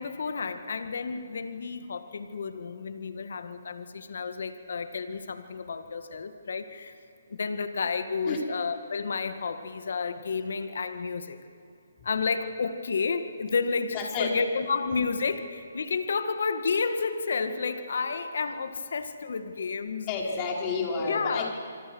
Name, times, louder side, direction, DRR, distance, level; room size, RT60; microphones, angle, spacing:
voice 1, 0.0-6.9 7.3-11.4 12.0-20.1 21.1-21.5, left 5 dB, 65° left, 9 dB, 1.9 m, -31 dB
voice 2, 13.9-14.3 20.1-21.5, left 4 dB, 25° left, -1 dB, 5.0 m, -30 dB
27.0 x 24.5 x 6.4 m, 2.6 s
hypercardioid pair, 150°, 0 cm